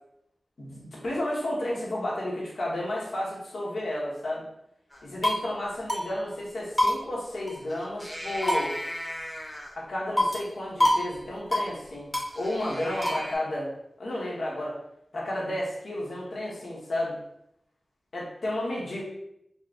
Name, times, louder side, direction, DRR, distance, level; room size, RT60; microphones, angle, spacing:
voice 1, 0.6-4.4 5.0-8.8 9.7-12.1 12.3-13.7 14.0-14.8 15.1-17.2 18.1-19.0, left 1 dB, 85° left, -5 dB, 1.3 m, -32 dB
sound 1, 4.9-5.5 5.9-6.1 6.3-6.4 6.8-7.7 8.0-9.7 10.2-10.5 10.8-11.1 11.3-11.7 12.1-13.3, left 1 dB, 10° left, 0.8 m, -27 dB
4.3 x 2.3 x 3.8 m, 0.77 s
wide cardioid pair, 80°, 0 cm